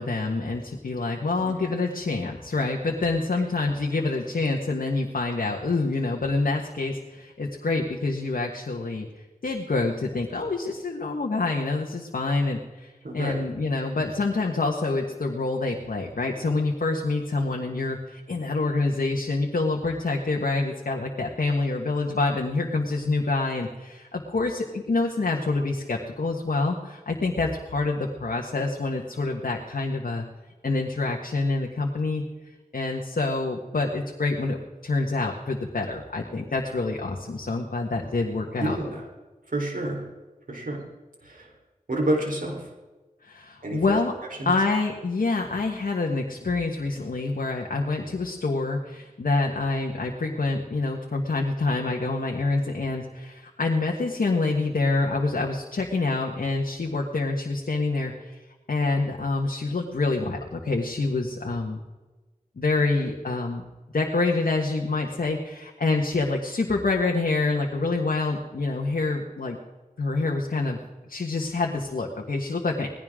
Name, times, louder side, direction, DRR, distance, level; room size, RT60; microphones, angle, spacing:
voice 1, 0.0-9.1 9.4-30.2 30.6-32.2 32.7-34.6 34.8-38.8 43.2-44.1 44.4-58.4 58.7-61.8 62.6-69.6 70.0-70.8 71.1-72.9, left 3 dB, 85° left, 0 dB, 1.6 m, -26 dB
voice 2, 13.0-13.4 38.6-39.0 39.5-40.1 40.5-40.9 41.2-41.5 41.9-42.7 43.6-43.8 44.4-44.5, right 1 dB, 70° right, 1 dB, 4.1 m, -28 dB
19.5 x 16.0 x 3.8 m, 1.2 s
wide cardioid pair, 60°, 14 cm